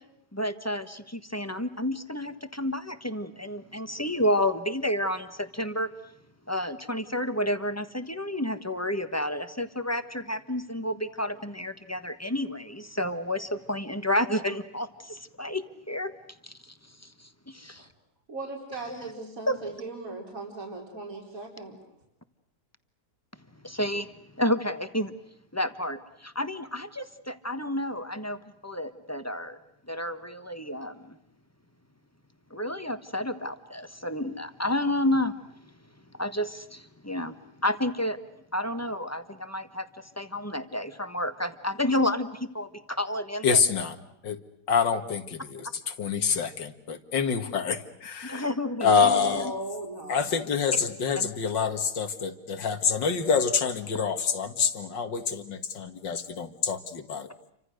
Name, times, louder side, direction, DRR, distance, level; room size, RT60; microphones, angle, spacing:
voice 1, 0.3-5.9 6.5-16.1 16.4-17.9 19.5-19.6 23.6-25.1 25.5-29.6 29.9-31.2 32.5-35.3 36.1-37.4 37.6-38.2 38.5-43.6 48.2-49.5 50.7-50.8 51.2-51.3, left 1 dB, 10° left, 10 dB, 1.1 m, -30 dB
voice 2, 18.3-21.7 49.0-50.2, right 2 dB, 50° right, 0 dB, 4.8 m, -38 dB
voice 3, 43.4-43.9 44.2-44.4 44.7-45.7 46.0-48.4 48.8-49.5 50.1-57.3, left 6 dB, 85° left, 9 dB, 2.5 m, -26 dB
30.0 x 25.0 x 6.5 m, 0.80 s
omnidirectional pair, 1.9 m